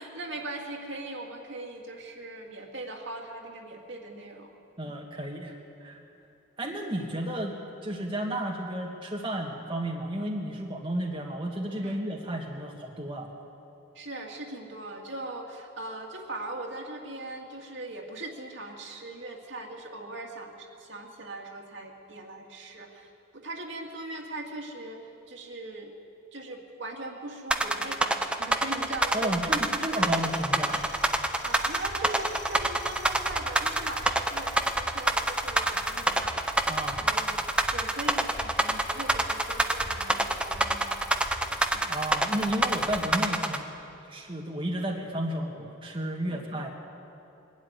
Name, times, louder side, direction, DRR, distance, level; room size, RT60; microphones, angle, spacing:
voice 1, 0.0-4.6 4.8-4.9 11.8-12.1 13.9-25.0 25.3-25.9 26.3-30.4 31.4-36.4 37.0-37.4 37.7-41.9 46.3-46.6, right 2 dB, 65° right, 0 dB, 2.3 m, -40 dB
voice 2, 4.8-5.5 5.8-6.0 6.6-7.5 7.8-13.3 29.1-30.9 36.7-37.1 41.9-43.7 44.1-46.7, right 1 dB, 25° right, -1 dB, 1.6 m, -32 dB
sound 1, 27.5-43.6, right 1 dB, 5° right, 0.7 m, -26 dB
sound 2, 27.7-43.1, left 1 dB, 60° left, 3.7 m, -46 dB
22.5 x 12.0 x 9.7 m, 2.9 s
head